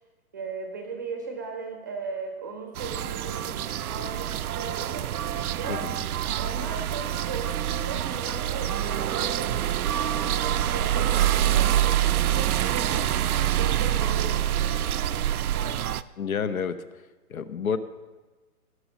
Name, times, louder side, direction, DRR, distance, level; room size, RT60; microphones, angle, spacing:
voice 1, 0.3-5.9 6.2-9.6 9.9-13.2 13.5-14.9 15.3-15.8, right 4 dB, 15° right, 3 dB, 0.7 m, -38 dB
sound 1, 2.7-16.0, right 11 dB, 75° right, 0.6 m, -26 dB
voice 2, 5.7-6.0 16.2-16.7 17.3-17.8, left 7 dB, 70° left, 13 dB, 1.0 m, -29 dB
16.5 x 6.5 x 6.2 m, 1.2 s
hypercardioid pair, 170°, 44 cm